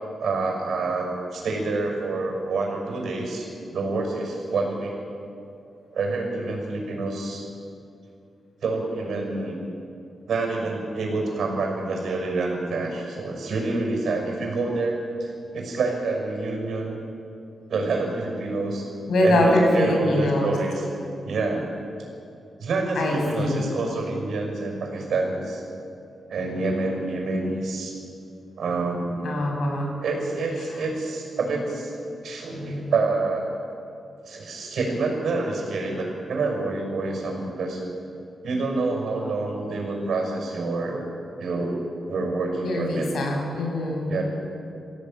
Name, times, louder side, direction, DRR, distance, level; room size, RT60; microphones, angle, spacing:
voice 1, 0.2-5.0 5.9-7.5 8.6-9.6 10.3-17.0 17.7-18.9 19.2-20.9 21.3-21.7 22.6-25.6 26.3-27.9 28.6-29.2 30.0-31.9 32.2-33.4 34.3-37.8 38.4-41.0 41.4-41.8 42.1-43.1 44.1-44.2, right 3 dB, 75° right, 1 dB, 6.2 m, -27 dB
voice 2, 19.1-20.5 23.0-23.7 29.2-29.9 42.6-44.0, left 1 dB, 85° left, 0 dB, 6.5 m, -23 dB
24.0 x 16.5 x 9.2 m, 2.6 s
wide cardioid pair, 130°, 0 cm